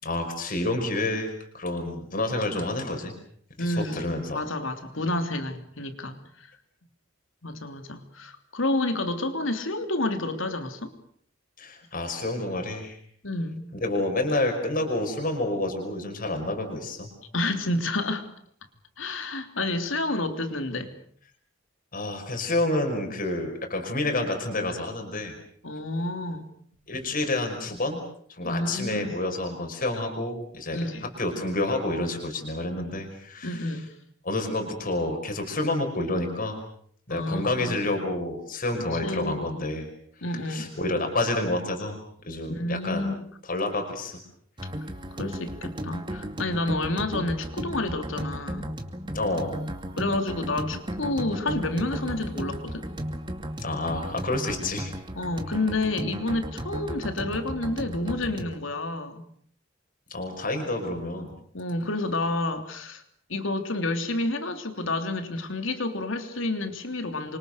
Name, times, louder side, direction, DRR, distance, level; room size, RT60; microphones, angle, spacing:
voice 1, 0.0-3.1 3.6-4.4 11.6-13.0 13.8-17.1 21.9-25.3 26.9-28.0 28.3-33.7 34.2-36.6 37.1-39.9 40.3-42.0 42.3-43.1 43.5-44.2 49.1-49.6 53.6-54.9 60.1-61.3, left 2 dB, 45° left, 5.5 m, -29 dB
voice 2, 3.6-4.1 4.3-6.5 7.4-10.9 13.2-13.7 17.3-18.3 19.0-20.9 25.6-26.5 28.4-29.1 30.7-31.1 33.4-33.9 37.1-37.8 38.8-39.6 40.2-40.7 42.5-43.2 45.2-48.7 50.0-52.9 55.1-59.2 61.5-63.0 63.3-67.4, left 2 dB, 80° left, 3.3 m, -29 dB
sound 1, 44.6-58.6, equal, 25° right, 2.4 m, -35 dB
28.5 x 25.0 x 6.7 m
head